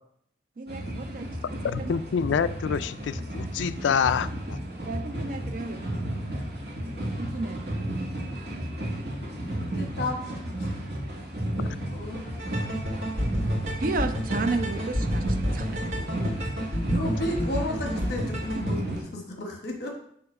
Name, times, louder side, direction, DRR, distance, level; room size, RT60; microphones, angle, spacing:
voice 1, 0.6-1.3 4.8-5.8 7.0-7.8 8.2-8.3 13.8-16.3 16.9-17.1, right 3 dB, 45° right, 8 dB, 0.4 m, -33 dB
sound 1, 0.7-19.0, right 1 dB, 65° right, 1.6 m, -33 dB
voice 2, 1.6-4.6, left 7 dB, 80° left, 13 dB, 0.3 m, -27 dB
voice 3, 9.6-10.7 11.9-12.2 16.8-20.0, left 1 dB, 55° left, 1 dB, 1.0 m, -33 dB
sound 2, 11.7-18.3, equal, 10° left, 1.9 m, -47 dB
sound 3, 12.4-18.8, equal, 90° right, 1.6 m, -31 dB
6.9 x 3.1 x 5.3 m, 0.67 s
head